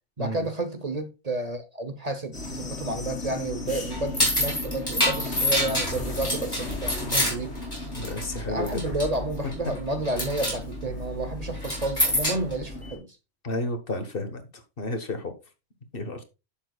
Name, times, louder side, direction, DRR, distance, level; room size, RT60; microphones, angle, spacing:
voice 1, 0.2-7.5 8.5-13.1, right 2 dB, 40° right, 1.0 m, -31 dB
sound 1, 2.3-13.0, left 2 dB, 75° left, 2.9 m, -36 dB
sound 2, 3.9-8.4 8.7-9.1 9.5-9.8 10.0-10.6 11.6-12.5, left 1 dB, 20° left, 3.8 m, -26 dB
voice 2, 7.9-8.8 13.4-14.4 14.8-15.3 15.9-16.2, left 2 dB, 55° left, 1.5 m, -31 dB
10.5 x 7.3 x 2.3 m
omnidirectional pair, 1.1 m